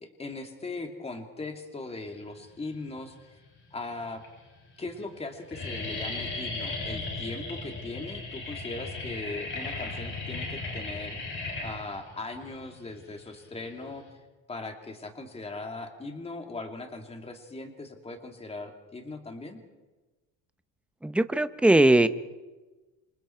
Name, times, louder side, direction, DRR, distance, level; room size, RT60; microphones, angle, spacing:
voice 1, 0.0-3.4 3.7-4.2 4.8-11.2 11.6-14.0 14.5-19.6, left 3 dB, 15° left, 4 dB, 2.7 m, -39 dB
sound 1, 2.9-3.5 4.2-4.3 4.5-4.9 5.2-14.1, left 3 dB, 30° left, 7.9 m, -36 dB
voice 2, 21.0-22.1, right 1 dB, 5° right, 11 dB, 0.8 m, -20 dB
27.5 x 26.5 x 4.6 m, 1.2 s
cardioid pair, 140°, 37 cm